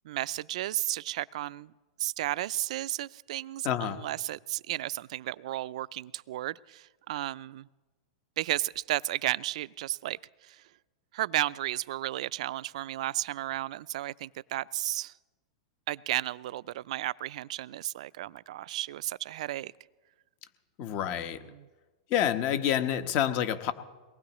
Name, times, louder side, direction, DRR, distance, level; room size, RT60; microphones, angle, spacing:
voice 1, 0.0-1.7 2.0-3.7 4.0-7.7 8.4-10.2 10.5-10.6 11.1-15.1 15.9-19.7 21.5-21.6, right 14 dB, 70° right, 19 dB, 0.4 m, -33 dB
voice 2, 3.6-4.0 20.8-21.4 22.1-23.7, left 10 dB, 45° left, 10 dB, 1.1 m, -28 dB
23.0 x 19.5 x 3.1 m, 1.3 s
hypercardioid pair, 125°, 4 cm